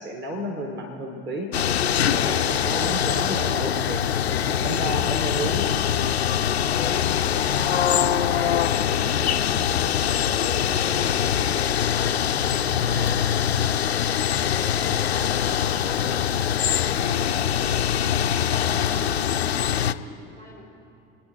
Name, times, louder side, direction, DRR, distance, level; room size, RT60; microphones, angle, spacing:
voice 1, 0.0-1.5 2.0-4.1 4.5-6.1 12.7-13.1 18.6-18.9, right 1 dB, 35° right, 1 dB, 2.2 m, -32 dB
sound 1, 1.5-19.9, left 9 dB, 85° left, 0.5 m, -23 dB
voice 2, 2.6-3.0 18.3-20.7, left 2 dB, 80° right, -6 dB, 4.5 m, -43 dB
Bowed string instrument, 10.5-15.3, right 2 dB, 55° right, 3.9 m, -47 dB
28.0 x 10.0 x 4.5 m, 2.6 s
figure-of-eight pair, 60°, 31 cm